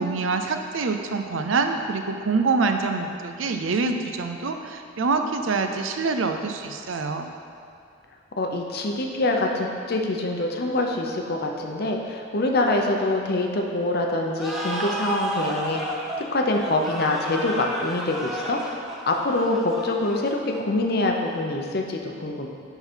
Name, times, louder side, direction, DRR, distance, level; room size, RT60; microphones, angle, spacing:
voice 1, 0.0-7.3, right 4 dB, 75° right, 6 dB, 0.5 m, -25 dB
voice 2, 8.4-16.0 16.3-18.6 19.1-22.5, left 2 dB, 50° left, 2 dB, 0.8 m, -25 dB
sound 1, 14.4-20.8, right 1 dB, ahead, 0.7 m, -32 dB
11.5 x 3.9 x 4.5 m, 2.3 s
head